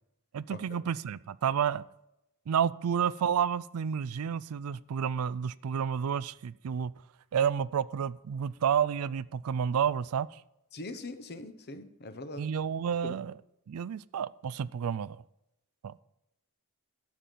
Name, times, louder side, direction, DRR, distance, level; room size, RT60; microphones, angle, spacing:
voice 1, 0.3-1.8 2.5-6.9 7.3-10.4 12.4-13.3 13.7-15.2 15.8-16.0, right 7 dB, 70° right, 18 dB, 0.4 m, -30 dB
voice 2, 10.7-12.5 13.0-13.2, left 2 dB, 45° left, 10 dB, 0.9 m, -41 dB
12.5 x 5.3 x 7.5 m, 0.85 s
head